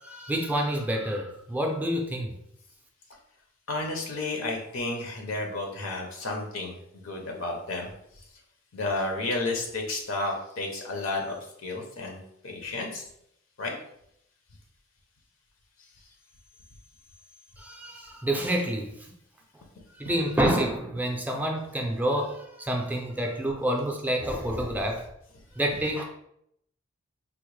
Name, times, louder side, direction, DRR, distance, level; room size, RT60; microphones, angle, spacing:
voice 1, 0.0-2.3 17.6-18.9 20.0-25.1 25.6-26.0, right 1 dB, 10° right, 1 dB, 0.4 m, -28 dB
voice 2, 3.7-7.9 8.7-12.2 12.4-13.0 13.6-13.7, left 2 dB, 70° left, 2 dB, 0.6 m, -32 dB
3.6 x 2.1 x 3.1 m, 0.74 s
head